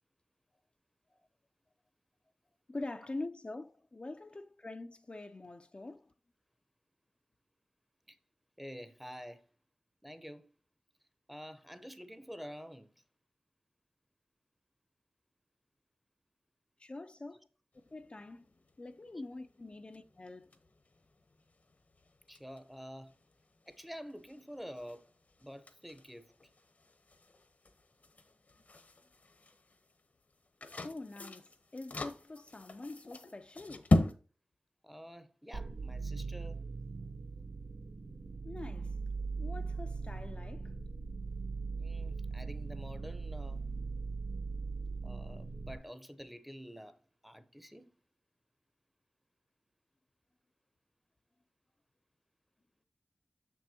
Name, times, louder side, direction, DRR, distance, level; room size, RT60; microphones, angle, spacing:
voice 1, 2.7-6.1 16.8-17.5 17.9-18.5 18.8-20.5 30.8-33.9 38.4-39.0 39.4-40.7, left 2 dB, 40° left, 0.4 m, -45 dB
voice 2, 8.6-9.4 10.0-10.5 11.3-12.9 19.1-19.2 22.3-23.1 23.7-25.0 25.4-26.3 34.8-36.6 41.8-43.6 45.0-47.0 47.2-47.9, equal, 5° right, 0.7 m, -48 dB
sound 1, 17.7-34.1, left 2 dB, 60° left, 0.9 m, -39 dB
sound 2, 35.5-45.8, right 4 dB, 70° right, 0.5 m, -40 dB
6.6 x 6.1 x 2.8 m
cardioid pair, 45°, 3 cm